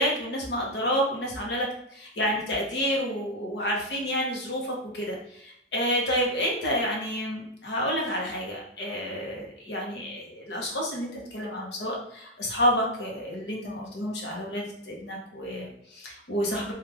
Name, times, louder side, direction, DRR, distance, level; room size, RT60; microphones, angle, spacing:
voice 1, 0.0-1.7 1.9-16.7, equal, 75° left, -1 dB, 0.9 m, -29 dB
3.0 x 2.4 x 3.3 m, 0.72 s
head